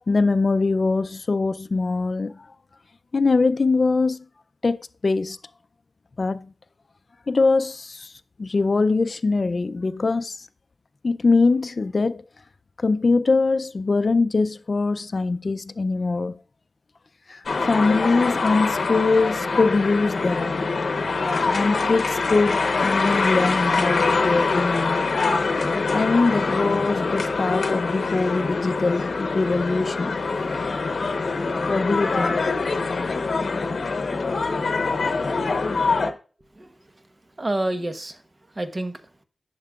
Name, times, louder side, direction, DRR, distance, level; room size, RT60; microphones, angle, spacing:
voice 1, 0.1-2.5 3.1-4.2 4.6-4.8 5.0-5.4 6.2-6.5 7.3-8.1 8.4-10.5 11.0-12.2 12.8-16.4 17.3-20.6 21.5-25.1 25.6-30.2 31.7-32.4, left 3 dB, 50° left, 0.4 m, -22 dB
sound 1, 17.5-36.1, left 4 dB, 70° left, 0.9 m, -24 dB
voice 2, 36.5-39.2, right 1 dB, 35° right, 1.0 m, -30 dB
11.0 x 6.6 x 2.3 m
wide cardioid pair, 75°, 0 cm